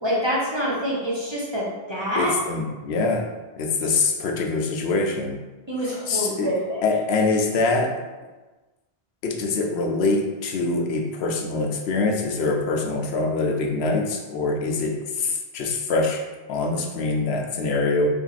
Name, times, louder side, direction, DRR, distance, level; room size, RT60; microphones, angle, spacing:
voice 1, 0.0-2.3 5.7-6.8, equal, 25° right, -6 dB, 1.0 m, -26 dB
voice 2, 2.2-3.3 3.6-5.4 6.1-6.5 6.8-7.9 9.2-16.2 16.5-18.1, left 3 dB, 90° left, 2 dB, 0.9 m, -24 dB
3.5 x 2.8 x 4.0 m, 1.2 s
omnidirectional pair, 1.0 m